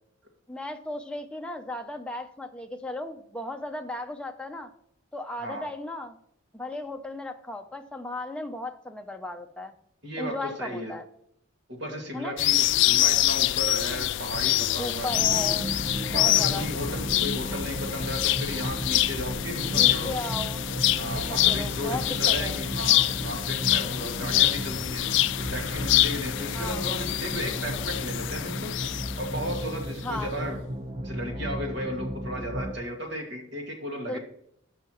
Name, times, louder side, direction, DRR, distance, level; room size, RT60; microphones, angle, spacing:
voice 1, 0.5-4.7 5.1-6.2 6.5-9.7 10.2-11.0 12.1-12.4 14.8-15.7 16.1-16.7 19.7-20.6 21.1-22.6 26.5-26.8 30.0-30.3 34.1-34.2, left 1 dB, 5° left, 4 dB, 0.5 m, -36 dB
voice 2, 10.0-10.9 11.7-15.1 16.1-20.2 21.0-25.0 25.5-28.7 29.2-30.6 31.0-34.2, equal, 60° right, 2 dB, 2.1 m, -35 dB
sound 1, 12.4-29.7, left 15 dB, 65° left, 0.3 m, -26 dB
sound 2, 15.1-32.7, equal, 30° right, 0.9 m, -34 dB
14.0 x 5.7 x 3.0 m, 0.71 s
head